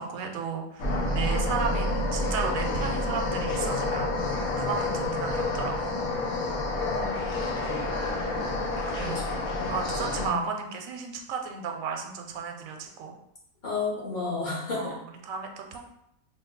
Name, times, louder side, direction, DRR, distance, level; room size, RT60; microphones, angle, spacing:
voice 1, 0.0-5.8 9.0-9.4 9.7-13.2 14.7-15.8, right 5 dB, 80° right, 3 dB, 1.0 m, -34 dB
sound 1, 0.8-10.3, left 2 dB, 85° left, 1.3 m, -29 dB
voice 2, 6.9-7.3 9.0-9.8 10.2-10.4 13.6-14.9, left 4 dB, 35° left, -6 dB, 1.3 m, -33 dB
3.4 x 2.6 x 3.8 m, 0.78 s
omnidirectional pair, 1.5 m